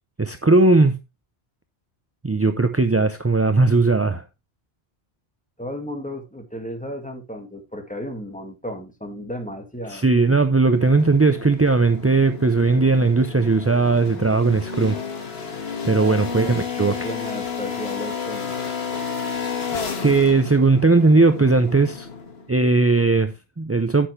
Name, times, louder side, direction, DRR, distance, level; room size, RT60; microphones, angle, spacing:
voice 1, 0.2-0.9 2.2-4.2 9.9-15.0 15.8-17.1 20.0-22.1 22.5-24.1, right 3 dB, 20° right, 0.4 m, -18 dB
voice 2, 5.6-10.1 16.2-16.6 16.9-18.5, equal, 5° left, 1.9 m, -34 dB
sound 1, 10.7-22.5, left 6 dB, 70° left, 1.7 m, -31 dB
10.0 x 8.0 x 3.2 m
omnidirectional pair, 1.1 m